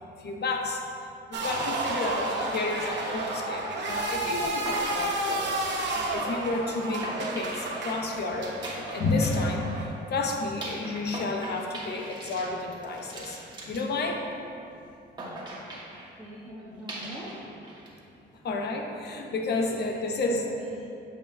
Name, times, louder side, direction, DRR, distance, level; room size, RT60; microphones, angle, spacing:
voice 1, 0.2-0.8 1.3-5.6 5.8-9.7 10.1-14.2 18.4-20.5, left 3 dB, 55° left, 2 dB, 0.8 m, -31 dB
sound 1, 1.3-9.9, right 2 dB, 65° right, 1.0 m, -31 dB
sound 2, 1.6-3.3 4.3-4.4 4.6-6.0 7.0-9.9 10.6-14.6 15.2-16.1 16.9-17.9 18.2-18.8, right 1 dB, 20° right, 1.3 m, -41 dB
voice 2, 16.2-17.3 19.5-20.9, equal, 5° right, -11 dB, 1.4 m, -43 dB
8.4 x 5.6 x 2.2 m, 2.7 s
cardioid pair, 90°, 20 cm